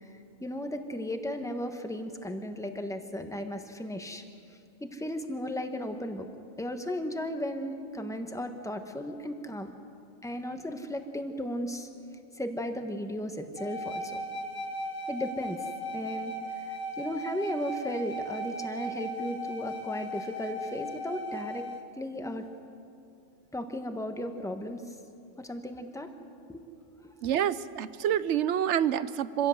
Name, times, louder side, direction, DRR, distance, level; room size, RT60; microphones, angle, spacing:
voice 1, 0.0-4.2 4.5-6.3 6.6-9.7 10.2-11.9 12.4-14.2 15.1-21.7 22.0-22.4 23.5-25.0 25.4-26.1 26.5-26.6 27.0-27.1, left 1 dB, 5° left, 6 dB, 1.1 m, -35 dB
sound 1, 13.6-21.8, right 1 dB, 65° left, 1.6 m, -37 dB
voice 2, 27.2-29.5, right 10 dB, 65° right, 16 dB, 0.9 m, -27 dB
25.0 x 16.0 x 7.8 m, 2.6 s
omnidirectional pair, 1.4 m